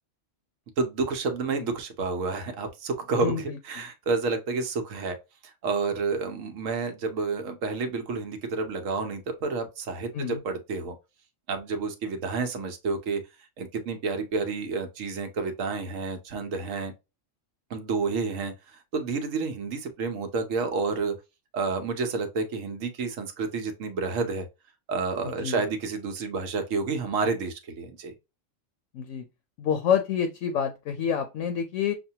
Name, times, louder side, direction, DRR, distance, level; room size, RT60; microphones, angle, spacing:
voice 1, 0.8-5.2 5.6-11.0 11.5-13.2 13.6-16.9 17.7-21.2 21.5-24.5 24.9-28.1, right 4 dB, 80° right, 1.2 m, -30 dB
voice 2, 3.2-3.9 10.1-10.4 25.2-25.6 28.9-29.3 29.6-31.9, left 8 dB, 75° left, 0.9 m, -28 dB
6.2 x 2.2 x 2.8 m
omnidirectional pair, 1.3 m